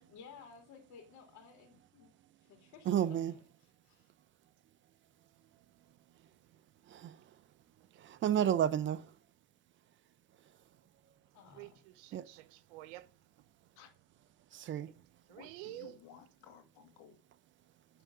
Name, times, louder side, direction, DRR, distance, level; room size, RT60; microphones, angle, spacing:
voice 1, 0.1-2.1 2.4-4.1 11.3-11.8, left 6 dB, 55° left, 2.4 m, -56 dB
voice 2, 2.9-3.3 6.9-7.2 8.0-9.1 12.1-12.2 14.5-14.9, right 10 dB, 35° right, 0.7 m, -31 dB
voice 3, 11.5-13.1 15.3-16.0, right 16 dB, 80° right, 1.0 m, -50 dB
voice 4, 15.3-17.1, left 8 dB, 75° left, 2.4 m, -56 dB
10.5 x 3.7 x 7.2 m
cardioid pair, 135°, 36 cm